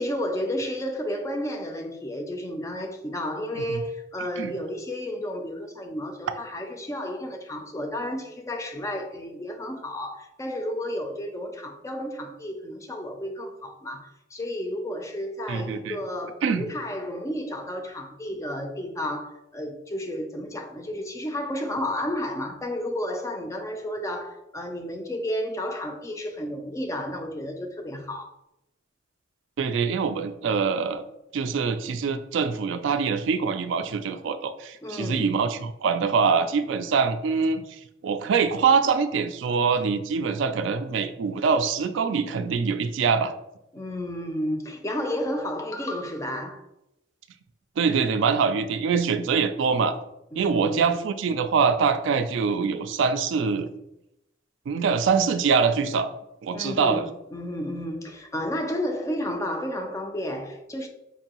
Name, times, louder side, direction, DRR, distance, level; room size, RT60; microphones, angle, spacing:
voice 1, 0.0-28.3 34.8-35.3 43.7-46.6 50.3-50.8 56.5-60.9, left 1 dB, 15° left, 0.3 m, -32 dB
voice 2, 15.5-16.0 16.4-16.6 29.6-31.0 31.3-43.3 47.8-50.0 50.4-53.7 54.7-56.1 56.4-57.1, right 5 dB, 70° right, 0.3 m, -24 dB
4.5 x 2.6 x 2.9 m
head